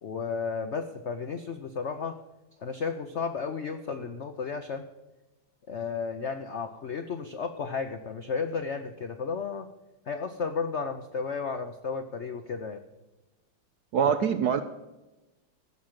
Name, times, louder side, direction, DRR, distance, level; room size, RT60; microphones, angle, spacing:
voice 1, 0.0-2.2 2.6-4.9 5.7-9.7 10.1-12.8, left 5 dB, 75° left, 7 dB, 0.6 m, -33 dB
voice 2, 13.9-14.6, right 7 dB, 70° right, 10 dB, 0.9 m, -24 dB
15.0 x 6.4 x 7.4 m, 1.0 s
omnidirectional pair, 2.2 m